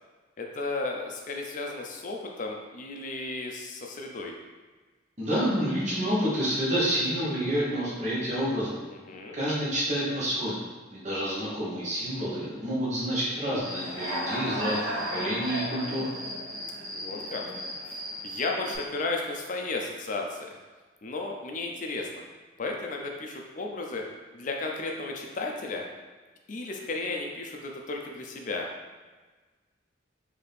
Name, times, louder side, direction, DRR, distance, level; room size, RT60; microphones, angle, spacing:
voice 1, 0.4-4.3 8.9-9.4 16.9-17.4 17.9-20.5 21.0-22.2 22.6-24.0 24.3-25.8 26.5-28.7, left 3 dB, 40° left, 1 dB, 0.4 m, -34 dB
voice 2, 5.2-8.8 9.3-10.6 10.9-16.1, equal, 40° right, -7 dB, 1.0 m, -28 dB
Human voice / Cricket, 13.6-18.8, equal, 90° right, 1.1 m, -35 dB
4.1 x 2.8 x 3.4 m, 1.3 s
head